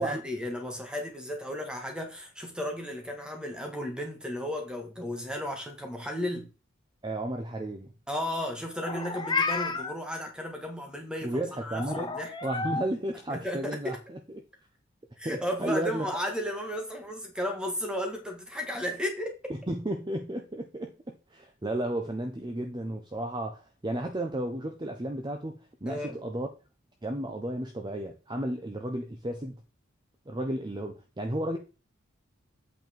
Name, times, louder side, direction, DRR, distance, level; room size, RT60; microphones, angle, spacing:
voice 1, 0.0-6.5 8.1-12.3 13.3-13.8 15.2-19.4 25.9-26.2, equal, 5° right, 1.7 m, -34 dB
voice 2, 7.0-7.9 11.2-12.1 12.4-14.2 15.2-16.1 19.5-21.0 21.3-26.5 27.0-29.6 30.3-31.6, right 1 dB, 20° right, 0.8 m, -33 dB
Meow, 8.8-9.9 11.8-12.9, left 4 dB, 20° left, 0.8 m, -31 dB
8.3 x 4.4 x 4.5 m
head